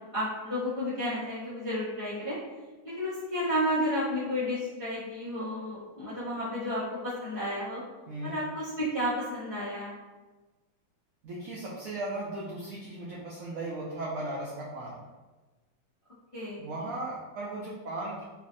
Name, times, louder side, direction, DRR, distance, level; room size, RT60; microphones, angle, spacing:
voice 1, 0.0-2.4 2.8-7.8 8.2-9.9 16.3-16.7, equal, 35° left, -12 dB, 0.5 m, -32 dB
voice 2, 11.2-15.0 16.6-18.2, right 2 dB, 80° right, -6 dB, 0.7 m, -36 dB
3.1 x 2.7 x 2.5 m, 1.2 s
omnidirectional pair, 2.1 m